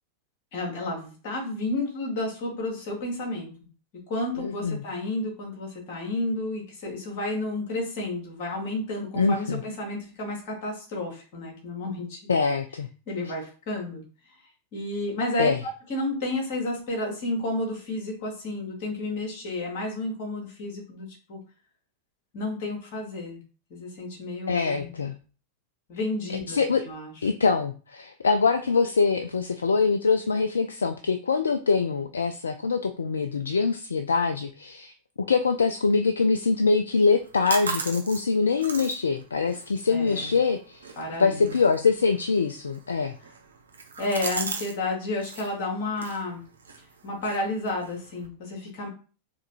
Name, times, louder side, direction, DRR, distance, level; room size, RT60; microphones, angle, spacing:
voice 1, 0.5-3.5 4.1-12.2 13.1-14.0 14.7-15.5 15.9-21.4 22.3-23.4 23.7-24.9 25.9-27.1 39.9-40.4 41.0-41.5 44.0-46.4 47.0-48.9, left 2 dB, 45° left, 0 dB, 2.2 m, -31 dB
voice 2, 4.4-4.8 9.1-9.6 12.3-12.9 13.2-13.3 15.4-15.6 24.5-25.1 26.3-26.8 27.2-34.9 35.3-40.9 41.2-43.1, left 4 dB, 70° left, 8 dB, 0.3 m, -24 dB
sound 1, 37.0-44.8 45.0-45.5 45.9-48.3, right 4 dB, 75° right, 0.9 m, -38 dB
4.6 x 3.4 x 2.9 m, 0.37 s
figure-of-eight pair, 90°, 0 cm